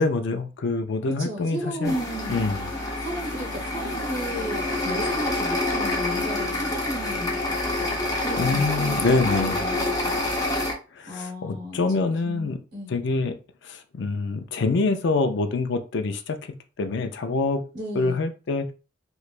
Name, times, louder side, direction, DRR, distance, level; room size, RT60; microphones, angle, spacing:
voice 1, 0.0-2.0 2.3-2.7 8.4-9.6 10.9-12.6 12.9-13.4 13.6-17.6 17.9-18.7, left 3 dB, 65° left, 7 dB, 0.4 m, -25 dB
voice 2, 1.2-2.6 3.0-7.4 8.2-10.2 11.1-11.8 12.2-12.9 17.7-18.2, equal, 60° right, -1 dB, 1.0 m, -34 dB
sound 1, 1.8-10.7, left 2 dB, 20° left, 0.8 m, -27 dB
3.2 x 3.1 x 2.4 m, 0.33 s
head